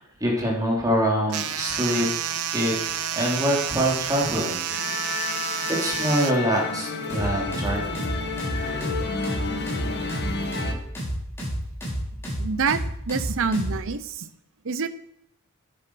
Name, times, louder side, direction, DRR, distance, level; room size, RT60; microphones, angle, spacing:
voice 1, 0.0-2.1 2.5-4.6 5.8-8.0, equal, 15° right, -3 dB, 3.9 m, -25 dB
sound 1, 1.3-6.3, right 9 dB, 80° right, 1.0 m, -29 dB
Musical instrument, 4.7-10.7, left 4 dB, 50° left, 1.8 m, -31 dB
sound 2, 7.1-13.8, equal, 10° left, 5.8 m, -30 dB
voice 2, 12.4-12.8 13.1-14.3 14.6-14.9, right 5 dB, 60° right, 12 dB, 0.8 m, -26 dB
11.5 x 10.5 x 5.9 m, 0.75 s
head